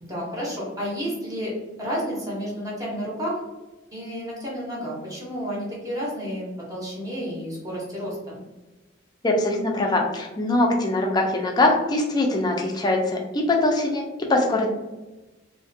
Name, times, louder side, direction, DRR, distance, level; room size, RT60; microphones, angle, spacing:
voice 1, 0.0-1.5 1.8-3.4 3.9-8.4, equal, 20° right, -5 dB, 0.7 m, -31 dB
voice 2, 9.2-14.7, left 2 dB, 20° left, 1 dB, 0.4 m, -22 dB
2.5 x 2.1 x 2.6 m, 1.1 s
head